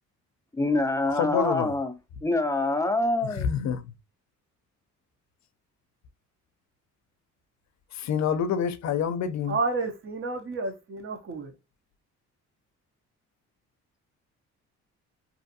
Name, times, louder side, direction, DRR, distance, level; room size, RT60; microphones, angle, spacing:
voice 1, 0.5-2.0 2.2-3.5, left 2 dB, 10° left, 0.5 m, -25 dB
voice 2, 1.2-1.7 3.4-3.8 7.9-9.6, left 7 dB, 65° left, 0.5 m, -27 dB
voice 3, 9.5-11.5, right 3 dB, 45° right, 0.7 m, -30 dB
2.6 x 2.4 x 2.6 m
cardioid pair, 90°, 30 cm